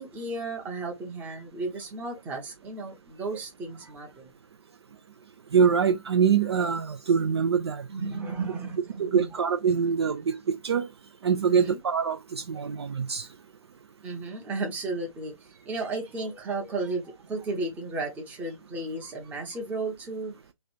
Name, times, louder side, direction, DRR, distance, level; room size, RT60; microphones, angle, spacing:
voice 1, 0.0-4.3 7.9-9.4 11.5-11.8 14.0-20.3, right 3 dB, 10° right, 0.8 m, -34 dB
voice 2, 5.5-7.9 9.0-10.9 11.2-13.3, right 6 dB, 45° right, 0.4 m, -24 dB
3.1 x 2.4 x 4.3 m
figure-of-eight pair, 140°, 18 cm